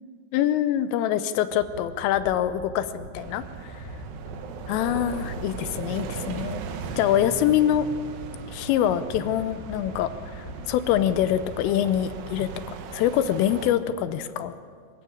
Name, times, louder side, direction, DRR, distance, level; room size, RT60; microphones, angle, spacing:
voice 1, 0.3-3.4 3.7-3.8 4.7-6.6 7.0-7.9 8.5-14.5, left 11 dB, 80° left, 12 dB, 3.2 m, -25 dB
sound 1, 1.4-12.9, equal, 50° left, 0.6 m, -42 dB
sound 2, 3.2-13.7, right 6 dB, 80° right, 2.1 m, -38 dB
24.0 x 15.0 x 8.6 m, 2.1 s
omnidirectional pair, 6.0 m